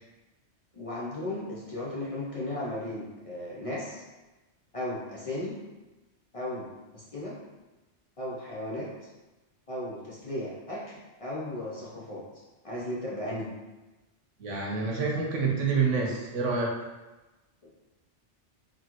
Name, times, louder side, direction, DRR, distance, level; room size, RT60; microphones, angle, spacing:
voice 1, 0.7-4.0 4.7-5.5 6.3-7.4 8.2-8.9 9.7-12.2 12.6-13.5 17.6-17.7, left 1 dB, 40° left, -6 dB, 0.5 m, -35 dB
voice 2, 14.4-16.7, right 4 dB, 85° right, -1 dB, 1.2 m, -27 dB
4.0 x 3.1 x 2.9 m, 1.1 s
omnidirectional pair, 1.2 m